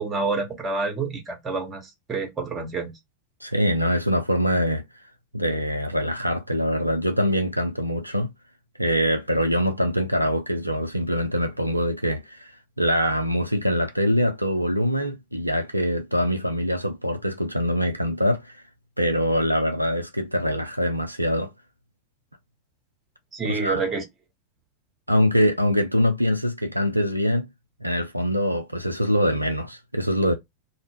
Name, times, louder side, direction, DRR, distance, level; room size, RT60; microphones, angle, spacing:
voice 1, 0.0-2.9 23.3-24.0, right 4 dB, 20° right, 0.8 m, -28 dB
voice 2, 3.4-4.8 5.3-8.3 8.8-12.5 12.8-18.6 19.0-21.5 23.4-23.8 25.1-27.5 27.8-30.3, equal, 90° right, 0.3 m, -24 dB
2.0 x 2.0 x 3.3 m
figure-of-eight pair, 90°, 0 cm